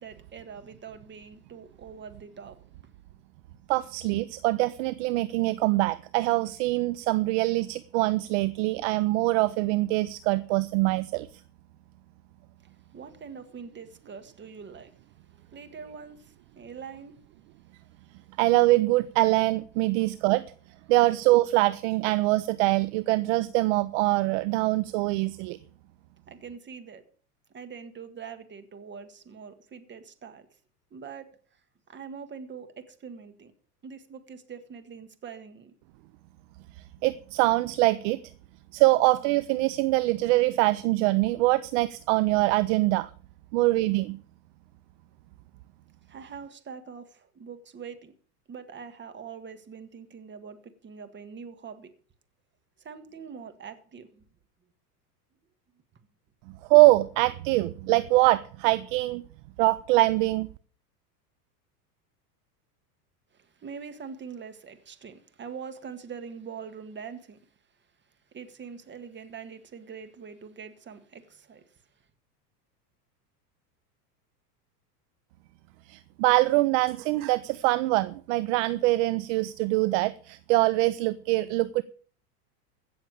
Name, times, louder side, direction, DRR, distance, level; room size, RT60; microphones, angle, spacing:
voice 1, 0.0-2.6 12.6-17.2 26.3-27.0 27.5-30.5 30.9-31.6 31.9-33.5 33.8-35.7 46.1-48.1 48.5-51.9 52.8-54.2 63.3-67.5 68.3-71.8, right 6 dB, 25° right, 1.8 m, -43 dB
voice 2, 3.7-11.3 18.4-20.4 20.9-25.6 37.0-38.2 38.7-43.1 43.5-44.2 56.7-59.2 59.6-60.5 75.8-81.8, right 19 dB, 50° right, 0.6 m, -24 dB
16.0 x 7.0 x 6.6 m
hypercardioid pair, 105°, 48 cm